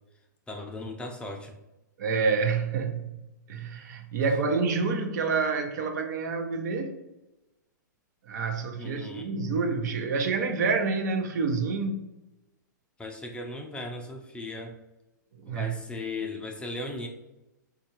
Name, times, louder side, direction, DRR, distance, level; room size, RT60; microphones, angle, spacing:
voice 1, 0.5-1.6 8.8-9.3 13.0-14.8 15.5-17.1, left 2 dB, 10° left, 0.4 m, -37 dB
voice 2, 2.0-3.2 3.5-7.0 8.3-12.0 15.4-15.7, right 4 dB, 65° right, 0.6 m, -28 dB
4.5 x 2.5 x 2.9 m
hypercardioid pair, 125°, 10 cm